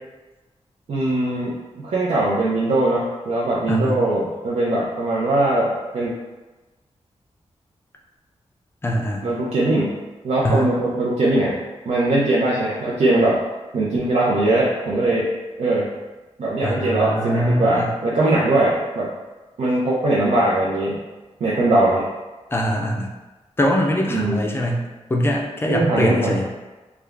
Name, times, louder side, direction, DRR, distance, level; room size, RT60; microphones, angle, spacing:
voice 1, 0.9-1.6 1.8-6.1 9.2-9.9 10.2-11.5 11.9-13.4 13.7-15.3 15.6-15.9 16.4-19.1 19.6-21.0 21.4-22.0 24.1-24.4 25.7-26.3, right 2 dB, 75° right, -6 dB, 0.6 m, -20 dB
voice 2, 3.7-4.0 8.8-9.3 10.4-10.7 16.6-17.9 22.5-23.1 23.6-26.4, equal, 20° left, 0 dB, 0.4 m, -22 dB
3.3 x 2.3 x 3.4 m, 1.2 s
wide cardioid pair, 175°, 11 cm